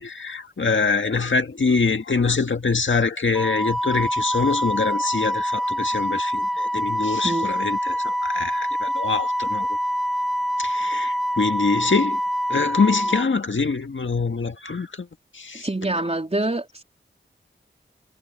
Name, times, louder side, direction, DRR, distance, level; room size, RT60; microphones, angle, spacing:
voice 1, 0.0-9.7 10.6-12.2 12.5-15.1 15.3-15.7, left 4 dB, 70° left, 1.8 m, -24 dB
Wind instrument woodwind instrument, 3.3-13.2, equal, ahead, 1.7 m, -25 dB
voice 2, 15.5-16.8, right 2 dB, 30° right, 3.9 m, -26 dB
cardioid pair, 45°, 21 cm